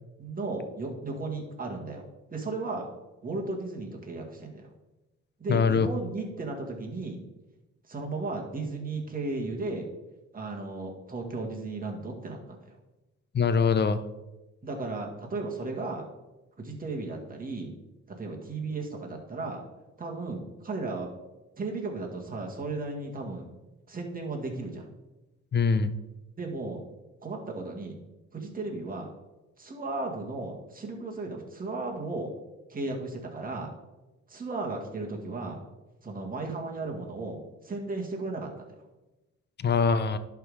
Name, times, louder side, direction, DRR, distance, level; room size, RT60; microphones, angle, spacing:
voice 1, 0.2-2.9 3.2-4.7 5.4-7.2 7.9-9.9 10.3-12.8 14.6-16.1 16.6-17.7 18.1-19.6 20.0-21.1 21.6-23.5 23.9-24.8 26.4-26.8 27.2-28.0 28.3-29.1 29.6-32.3 32.7-33.7 34.3-35.6 36.0-38.6, right 3 dB, 30° right, 0 dB, 1.8 m, -35 dB
voice 2, 5.5-5.9 13.3-14.0 25.5-25.9 39.6-40.2, left 5 dB, 35° left, 13 dB, 0.6 m, -23 dB
11.0 x 3.7 x 4.9 m, 1.1 s
cardioid pair, 90°, 30 cm